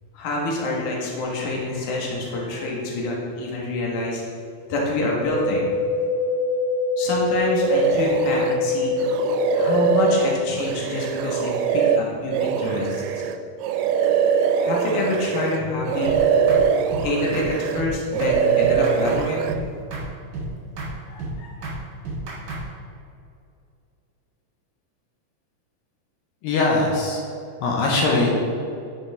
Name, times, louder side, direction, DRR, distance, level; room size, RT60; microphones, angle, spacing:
voice 1, 0.1-4.2 4.7-5.7 7.0-8.9 9.5-13.0 14.6-16.2 17.0-19.4 21.1-21.6, left 2 dB, 65° left, -3 dB, 2.8 m, -26 dB
sound 1, 5.2-10.3, left 3 dB, 30° right, 1.1 m, -24 dB
sound 2, 7.6-8.6 9.0-15.6 15.9-17.9 18.1-19.5, right 7 dB, 90° right, 2.3 m, -22 dB
sound 3, 16.0-16.2 16.5-16.6 16.9-17.1 17.3-17.5 17.8-17.9 18.2-18.3 18.6-19.2 19.5-19.6 19.9-20.1 20.3-20.5 20.8-20.9 21.2-21.3 21.6-21.8 22.0-22.6, right 2 dB, 65° right, 3.7 m, -31 dB
voice 2, 26.4-27.2 27.6-28.3, left 3 dB, 85° left, -2 dB, 2.8 m, -21 dB
11.5 x 5.9 x 3.6 m, 2.6 s
omnidirectional pair, 3.9 m